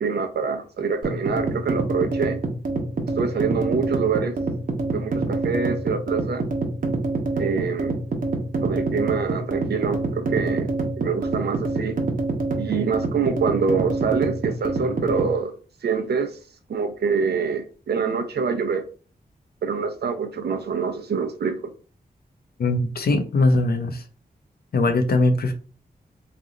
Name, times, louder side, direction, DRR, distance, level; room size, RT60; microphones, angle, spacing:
voice 1, 0.0-2.4 3.2-4.4 4.9-6.4 7.4-8.0 8.6-12.0 12.6-15.5 15.8-16.4 16.7-18.8 19.6-21.6, right 5 dB, 90° right, 0.6 m, -25 dB
sound 1, 1.0-15.3, right 3 dB, 60° right, 0.9 m, -26 dB
voice 2, 22.6-24.0 24.7-25.5, left 2 dB, 75° left, 0.6 m, -20 dB
3.3 x 2.5 x 3.8 m
wide cardioid pair, 110°, 16 cm